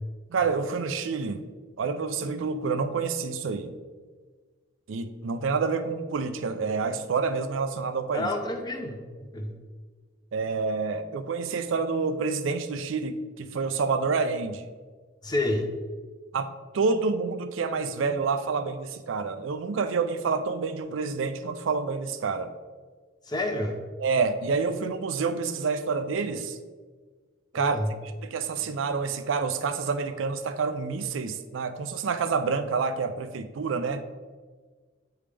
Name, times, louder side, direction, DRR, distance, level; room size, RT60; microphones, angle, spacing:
voice 1, 0.3-1.5 1.8-3.8 4.9-8.3 10.3-14.6 16.3-16.5 16.7-22.5 24.0-26.6 27.5-27.8 28.2-34.0, right 4 dB, 75° right, 9 dB, 0.4 m, -28 dB
voice 2, 8.1-9.5 15.2-15.7 23.3-23.8 27.6-27.9, left 1 dB, 20° left, 3 dB, 0.6 m, -29 dB
8.5 x 3.4 x 3.3 m, 1.5 s
head